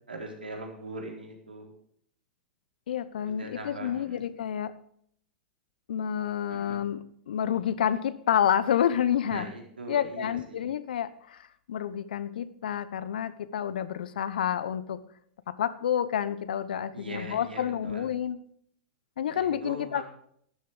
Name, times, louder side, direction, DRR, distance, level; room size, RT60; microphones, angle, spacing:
voice 1, 0.0-1.7 3.2-4.2 6.5-6.9 9.2-10.7 16.9-18.1 19.3-20.1, right 2 dB, 85° right, 1 dB, 4.2 m, -41 dB
voice 2, 2.9-4.8 5.9-9.5 9.9-15.0 15.5-18.4 19.2-20.1, left 9 dB, 70° left, 15 dB, 1.0 m, -29 dB
12.5 x 12.5 x 5.0 m, 0.65 s
hypercardioid pair, 100°, 5 cm